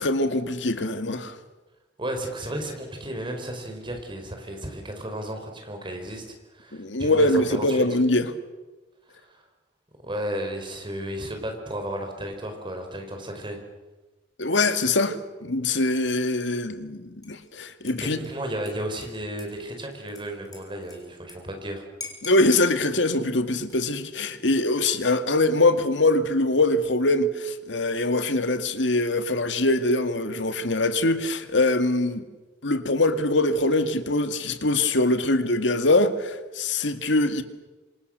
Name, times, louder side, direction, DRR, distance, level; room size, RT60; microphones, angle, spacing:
voice 1, 0.0-1.4 6.7-8.3 14.4-18.2 22.2-32.3 32.6-37.4, left 2 dB, 80° left, 2.1 m, -23 dB
voice 2, 2.0-6.2 6.5-7.8 9.1-9.4 10.0-13.6 18.1-21.8, right 1 dB, 25° right, 5.3 m, -33 dB
Dishes pots and pans / Liquid, 17.2-17.5 17.9-21.4 21.6-21.7 22.0-22.7 23.5-24.0, left 4 dB, 20° left, 6.1 m, -44 dB
27.5 x 26.0 x 6.8 m
head